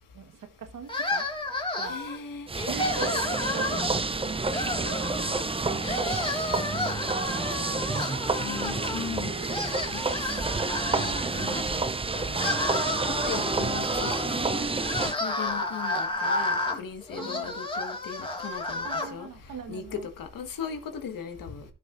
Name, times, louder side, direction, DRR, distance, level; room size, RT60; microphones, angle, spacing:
voice 1, 0.1-1.4 1.7-2.0 2.6-5.1 5.6-6.6 17.2-17.5 18.8-20.1, right 6 dB, 65° right, 1.6 m, -42 dB
sound 1, 0.9-2.2 2.6-4.0 4.5-5.5 5.8-9.0 9.3-11.6 12.2-19.1, left 2 dB, 15° left, 2.0 m, -32 dB
voice 2, 1.8-2.5 8.4-10.2 11.0-11.9 12.1-12.6 13.0-14.7 15.2-19.3 19.7-21.6, left 7 dB, 75° left, 1.8 m, -38 dB
sound 2, 2.5-15.1, right 3 dB, 15° right, 0.7 m, -29 dB
15.5 x 6.1 x 2.6 m
cardioid pair, 80°, 34 cm